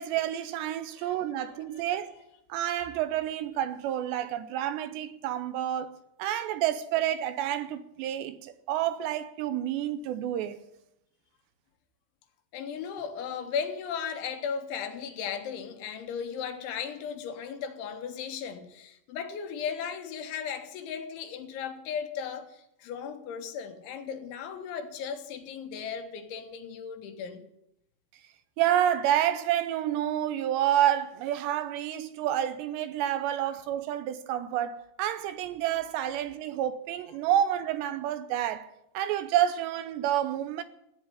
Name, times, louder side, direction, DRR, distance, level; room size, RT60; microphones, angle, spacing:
voice 1, 0.0-2.1 2.5-10.6 28.6-38.7 38.9-40.6, right 11 dB, 80° right, 2.7 m, -29 dB
voice 2, 1.0-1.4 1.7-1.8 12.5-27.4, left 7 dB, 80° left, 3.8 m, -36 dB
15.0 x 9.6 x 9.9 m
omnidirectional pair, 5.4 m